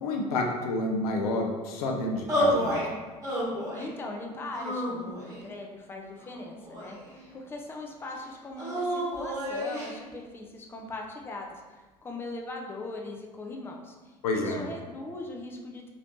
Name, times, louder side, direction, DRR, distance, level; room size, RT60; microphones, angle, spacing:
voice 1, 0.0-2.8 14.2-14.6, left 2 dB, 70° left, 2 dB, 0.5 m, -29 dB
sound 1, 2.3-2.9 3.2-3.9 4.5-5.4 6.2-7.2 8.6-9.9, equal, 15° right, 1.3 m, -30 dB
voice 2, 3.7-15.9, left 2 dB, 10° left, 1 dB, 0.4 m, -40 dB
3.0 x 2.8 x 2.8 m, 1.3 s
figure-of-eight pair, 65°, 20 cm